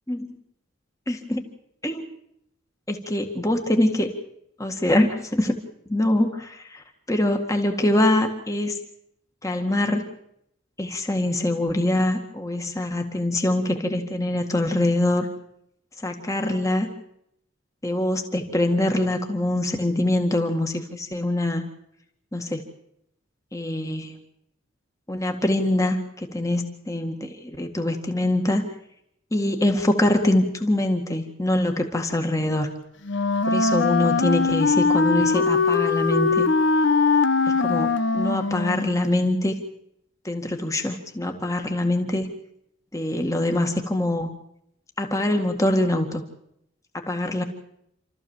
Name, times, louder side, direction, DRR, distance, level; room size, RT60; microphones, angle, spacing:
voice 1, 1.1-1.4 1.8-2.0 2.9-4.1 4.6-5.5 5.9-8.8 9.4-10.0 10.8-15.3 16.0-16.9 17.8-21.7 22.3-22.6 23.5-24.2 25.1-28.6 29.3-32.7 33.4-36.5 37.6-39.6 40.2-42.3 42.9-44.3 45.0-46.2 47.1-47.4, left 1 dB, 15° left, 5 dB, 1.9 m, -24 dB
Wind instrument woodwind instrument, 33.0-39.0, left 4 dB, 60° left, 1.1 m, -21 dB
28.0 x 14.0 x 7.3 m, 0.76 s
head